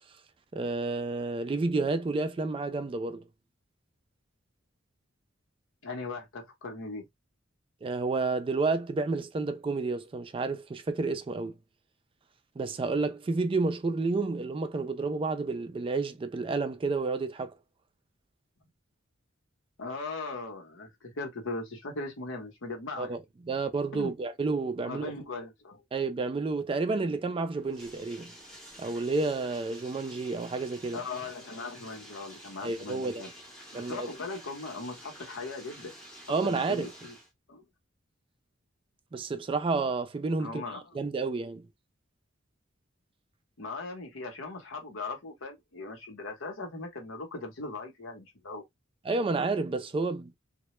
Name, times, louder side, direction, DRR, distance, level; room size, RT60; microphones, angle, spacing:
voice 1, 0.5-3.2 7.8-11.5 12.6-17.5 23.0-23.2 23.5-25.1 25.9-28.3 28.8-31.0 32.6-33.2 33.7-34.1 36.3-36.9 39.1-40.6 40.9-41.7 49.1-50.4, right 3 dB, 25° right, 0.3 m, -30 dB
voice 2, 5.8-7.1 19.8-23.2 23.9-24.1 24.8-25.8 30.9-33.3 33.7-35.9 36.4-37.1 37.5-37.6 40.4-40.9 43.6-48.6, left 3 dB, 80° left, 0.9 m, -39 dB
Bathtub (filling or washing), 27.5-37.3, equal, 5° left, 0.7 m, -50 dB
2.2 x 2.0 x 2.9 m
head